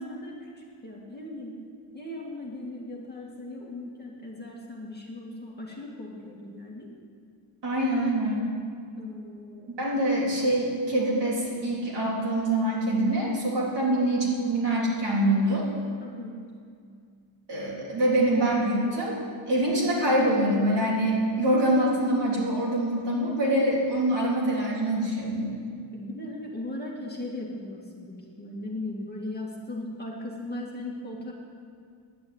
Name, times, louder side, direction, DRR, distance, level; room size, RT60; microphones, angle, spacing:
voice 1, 0.0-1.6 1.9-6.9 9.0-9.7 16.0-16.4 25.9-31.3, left 1 dB, 20° left, -3 dB, 1.9 m, -38 dB
voice 2, 7.6-8.5 9.8-15.6 17.5-19.2 19.5-25.5, right 1 dB, 60° right, -5 dB, 3.6 m, -25 dB
10.5 x 9.6 x 9.4 m, 2.2 s
wide cardioid pair, 180°, 47 cm